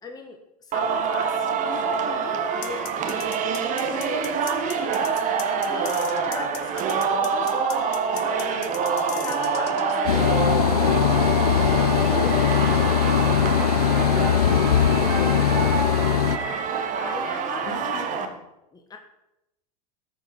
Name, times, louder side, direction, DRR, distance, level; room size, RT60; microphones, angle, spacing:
voice 1, 0.0-3.3 3.8-5.3 5.7-8.8 9.2-11.3 11.9-15.9 17.0-17.7 18.7-19.0, left 4 dB, 20° left, 4 dB, 1.4 m, -39 dB
Singing, 0.7-18.3, right 5 dB, 40° right, 1.5 m, -26 dB
sound 1, 2.6-9.9, left 13 dB, 55° left, 1.1 m, -39 dB
sound 2, 10.1-16.4, left 10 dB, 90° left, 0.6 m, -20 dB
voice 2, 17.3-18.4, left 4 dB, 75° left, 0 dB, 3.6 m, -39 dB
12.5 x 5.4 x 6.2 m, 0.89 s
hypercardioid pair, 95°, 19 cm